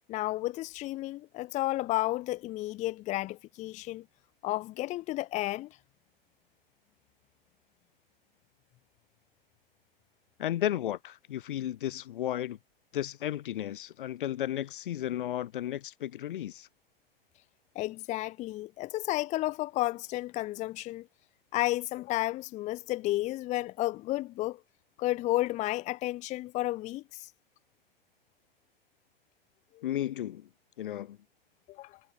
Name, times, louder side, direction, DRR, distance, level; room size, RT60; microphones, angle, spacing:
voice 1, 0.1-4.0 4.4-5.7 17.7-21.1 21.5-24.6 25.0-27.3 29.7-29.9 31.7-32.0, left 17 dB, 25° left, 0.9 m, -32 dB
voice 2, 10.4-12.6 12.9-16.7 29.8-30.5 30.8-31.2, left 12 dB, 55° left, 1.4 m, -33 dB
figure-of-eight pair, 110°, 30 cm